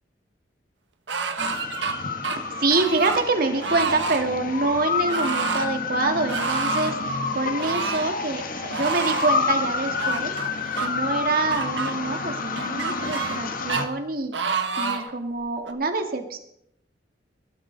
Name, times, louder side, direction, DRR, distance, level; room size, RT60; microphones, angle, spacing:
sound 1, 1.1-1.9 2.2-3.2 3.6-4.2 5.1-5.7 6.3-7.0 7.6-8.1 8.7-9.3 10.0-10.9 11.5-11.9 12.6-13.4 13.7-13.8 14.3-15.1 15.7-15.8, right 5 dB, 85° right, 1.6 m, -28 dB
sound 2, 1.4-13.9, left 4 dB, 50° left, 1.5 m, -29 dB
voice 1, 2.3-10.3 10.8-16.4, right 3 dB, 55° right, 5 dB, 2.1 m, -26 dB
20.0 x 12.5 x 4.0 m, 0.75 s
head